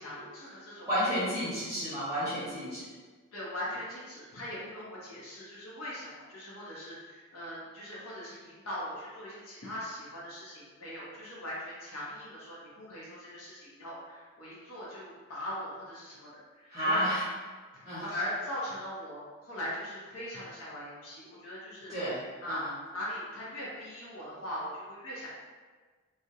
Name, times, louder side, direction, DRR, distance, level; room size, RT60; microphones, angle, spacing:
voice 1, 0.0-0.9 3.3-17.1 17.7-21.9 22.4-22.6 22.9-25.3, left 1 dB, 80° left, -8 dB, 0.7 m, -40 dB
voice 2, 0.9-2.8 16.7-17.3 17.8-18.1 21.9-22.7, equal, 15° right, -12 dB, 0.6 m, -31 dB
2.3 x 2.1 x 2.8 m, 1.4 s
head